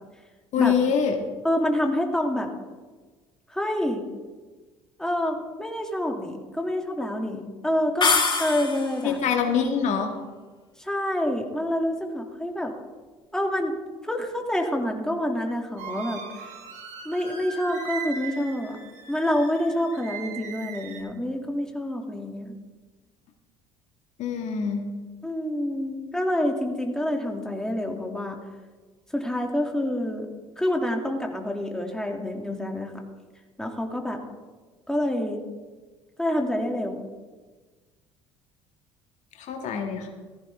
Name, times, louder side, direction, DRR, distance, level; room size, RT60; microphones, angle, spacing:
voice 1, 0.5-1.2 9.0-10.1 24.2-24.8 39.4-40.1, left 7 dB, 55° left, 3 dB, 1.8 m, -24 dB
voice 2, 1.4-2.5 3.5-4.0 5.0-9.2 10.8-12.7 13.3-13.7 14.0-16.2 17.0-18.8 19.1-22.5 25.2-28.4 29.1-30.3 30.6-32.9 33.6-34.2 34.9-35.4 36.2-37.1, left 1 dB, 5° left, 2 dB, 2.4 m, -27 dB
sound 1, 8.0-9.1, left 4 dB, 35° left, 4.2 m, -23 dB
sound 2, 15.8-21.0, right 6 dB, 60° right, 3.8 m, -39 dB
15.5 x 15.0 x 3.6 m, 1.3 s
hypercardioid pair, 60°, 14 cm